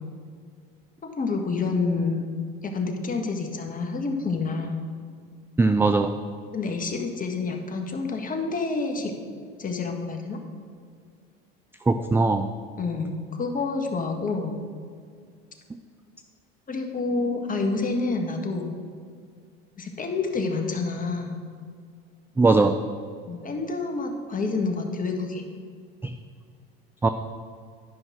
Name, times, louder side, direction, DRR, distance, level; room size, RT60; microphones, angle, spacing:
voice 1, 1.0-2.2 2.6-4.8 6.5-9.1 9.6-10.4 12.8-14.6 16.7-18.7 19.8-21.4 23.3-25.4, left 3 dB, 25° left, 4 dB, 1.6 m, -28 dB
voice 2, 5.6-6.1 11.9-12.5 22.4-22.8 26.0-26.1 27.0-27.1, right 3 dB, 10° right, 8 dB, 0.3 m, -20 dB
11.0 x 5.3 x 6.1 m, 2.1 s
hypercardioid pair, 80°, 31 cm